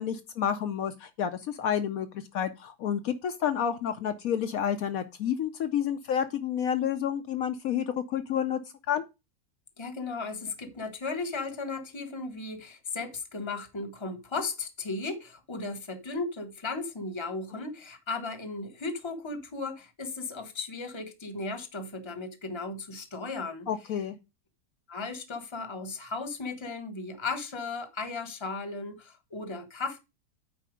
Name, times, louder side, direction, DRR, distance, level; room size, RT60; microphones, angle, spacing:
voice 1, 0.0-8.6 8.9-9.0 23.7-24.1, left 9 dB, 70° left, 1.1 m, -30 dB
voice 2, 9.8-23.7 24.9-30.0, left 3 dB, 20° left, 1.0 m, -36 dB
9.2 x 4.4 x 5.0 m
omnidirectional pair, 1.6 m